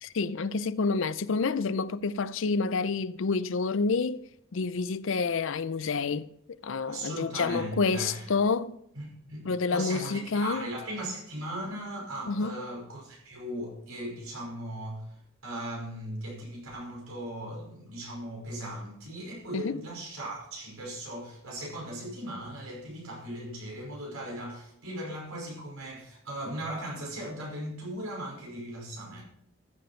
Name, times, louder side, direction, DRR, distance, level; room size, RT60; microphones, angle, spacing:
voice 1, 0.0-4.2 4.5-6.3 6.6-8.8 9.5-10.7 12.3-12.6 19.5-19.7, left 4 dB, 70° left, 0.5 m, -28 dB
voice 2, 6.9-8.3 8.9-15.1 15.4-29.2, right 1 dB, 85° right, 5.4 m, -38 dB
14.0 x 7.8 x 4.4 m
head